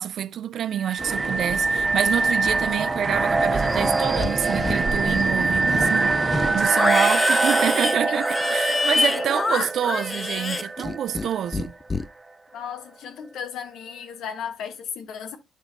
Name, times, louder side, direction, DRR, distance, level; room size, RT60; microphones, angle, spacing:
voice 1, 0.0-11.7, right 10 dB, 70° right, 0.5 m, -27 dB
sound 1, 0.7-11.5, right 3 dB, 20° right, 0.7 m, -24 dB
sound 2, 1.0-6.7, right 4 dB, 45° right, 1.7 m, -30 dB
Livestock farm animals working animals, 3.7-4.3 4.6-5.3 5.7-11.3 11.5-12.0, left 3 dB, 25° left, 0.5 m, -27 dB
voice 2, 6.7-7.3 8.1-8.2 8.5-8.8 9.1-9.7 12.5-15.4, left 8 dB, 80° left, 1.4 m, -35 dB
9.0 x 5.2 x 2.7 m
cardioid pair, 90°, 0 cm